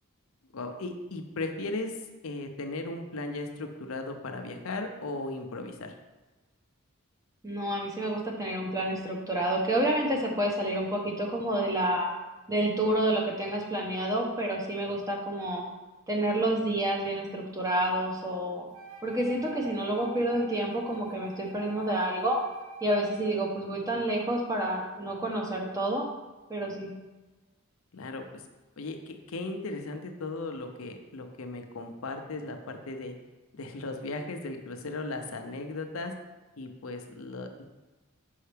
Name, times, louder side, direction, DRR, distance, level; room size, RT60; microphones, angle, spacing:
voice 1, 0.5-2.0 2.2-5.9 27.9-28.4 28.8-33.1 33.5-36.1 36.6-37.6, left 2 dB, 70° left, 5 dB, 0.6 m, -37 dB
voice 2, 7.4-12.1 12.5-15.6 16.1-18.7 19.0-22.4 22.8-26.1 26.5-26.9, right 1 dB, 15° right, -1 dB, 0.8 m, -29 dB
Wind instrument woodwind instrument, 18.7-23.6, right 3 dB, 75° right, 0.8 m, -46 dB
5.6 x 5.3 x 3.4 m, 1.2 s
head